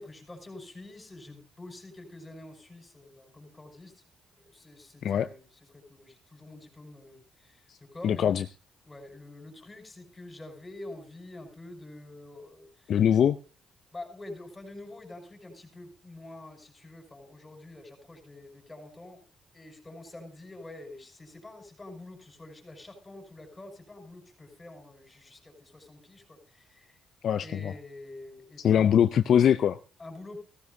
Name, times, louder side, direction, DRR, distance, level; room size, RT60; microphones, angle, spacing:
voice 1, 0.0-3.9 4.4-5.5 5.7-8.3 8.8-12.9 13.9-19.2 19.5-26.9 27.4-28.9 30.0-30.4, left 2 dB, 25° left, 5 dB, 5.5 m, -47 dB
voice 2, 8.0-8.4 12.9-13.4 27.2-27.7 28.6-29.8, left 9 dB, 65° left, 11 dB, 0.5 m, -22 dB
15.5 x 14.0 x 2.7 m, 0.35 s
supercardioid pair, 70°, 0 cm